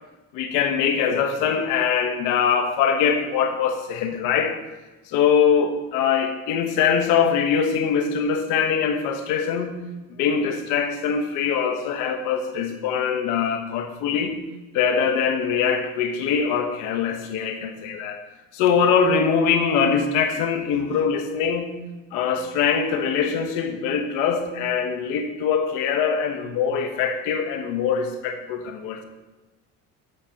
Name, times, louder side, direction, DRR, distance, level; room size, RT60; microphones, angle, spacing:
voice 1, 0.3-4.6 5.1-9.9 10.2-14.4 14.7-18.2 18.5-21.8 22.1-29.0, left 6 dB, 80° left, 1.3 m, -23 dB
12.5 x 4.3 x 5.2 m
cardioid pair, 105°, 30 cm